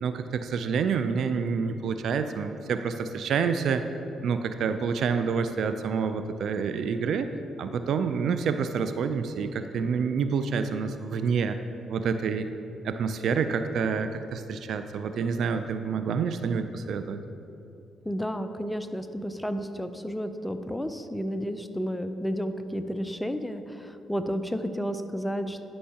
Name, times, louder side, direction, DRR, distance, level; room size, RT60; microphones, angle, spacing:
voice 1, 0.0-3.8 4.2-7.3 7.6-11.6 11.9-12.5 12.8-17.2, right 6 dB, 70° right, 9 dB, 0.4 m, -28 dB
voice 2, 18.1-25.6, equal, 5° left, 9 dB, 0.5 m, -32 dB
11.5 x 5.5 x 2.8 m, 2.7 s
supercardioid pair, 60°, 0 cm